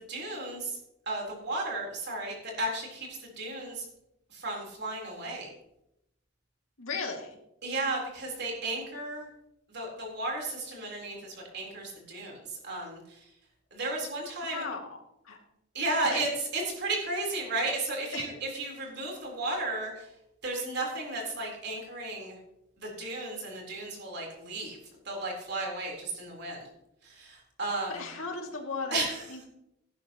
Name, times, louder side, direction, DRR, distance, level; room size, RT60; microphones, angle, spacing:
voice 1, 0.1-0.8 1.1-3.1 3.4-3.8 4.3-5.5 7.6-9.3 9.7-13.3 13.7-14.6 15.7-20.1 20.4-22.4 22.8-24.8 25.0-26.7 27.0-28.0 28.9-29.2, right 2 dB, 55° right, -1 dB, 3.9 m, -34 dB
voice 2, 6.8-7.4 14.5-14.8 15.2-15.4 16.1-16.3 18.1-18.3 27.9-29.4, left 4 dB, 85° left, 1 dB, 2.4 m, -36 dB
16.5 x 11.5 x 3.0 m, 0.83 s
head